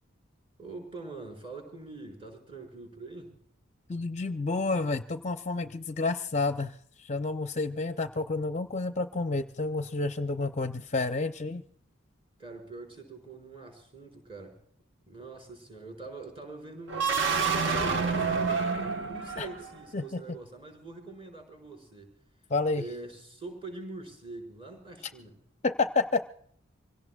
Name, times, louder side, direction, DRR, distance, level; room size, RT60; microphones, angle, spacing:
voice 1, 0.6-3.4 12.4-14.6 15.1-22.1 22.7-25.3, right 3 dB, 25° right, 1 dB, 4.9 m, -44 dB
voice 2, 3.9-11.6 19.4-19.5 19.9-20.2 22.5-22.9 25.6-26.3, left 3 dB, 35° left, 8 dB, 0.6 m, -30 dB
sound 1, 16.9-19.9, right 5 dB, 60° right, 1.3 m, -28 dB
26.0 x 17.5 x 2.3 m, 0.67 s
head